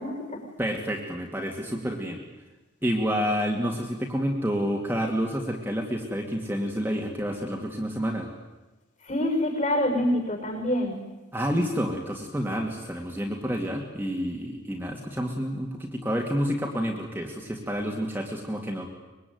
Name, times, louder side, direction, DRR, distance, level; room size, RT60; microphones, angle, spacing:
voice 1, 0.0-0.4 9.0-11.0, left 1 dB, 35° left, 4 dB, 5.9 m, -26 dB
voice 2, 0.6-2.2 2.8-8.3 11.3-18.9, equal, 10° right, 0 dB, 2.5 m, -29 dB
24.5 x 22.5 x 9.6 m, 1.1 s
head